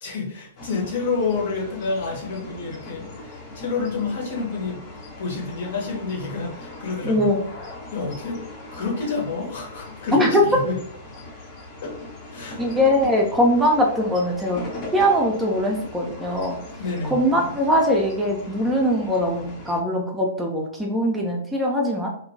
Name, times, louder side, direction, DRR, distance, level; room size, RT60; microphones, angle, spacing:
voice 1, 0.0-4.8 5.2-7.3 7.9-8.4 8.7-10.8 11.8-11.9 12.3-12.6 16.8-17.2, left 4 dB, 60° left, 0 dB, 0.9 m, -28 dB
sound 1, 0.6-19.8, left 2 dB, 30° left, 0.6 m, -40 dB
voice 2, 7.0-7.4 10.1-10.4 12.6-14.6 14.9-16.6 17.1-22.1, equal, 5° right, -1 dB, 0.5 m, -21 dB
2.8 x 2.2 x 2.6 m, 0.65 s
figure-of-eight pair, 110°, 0 cm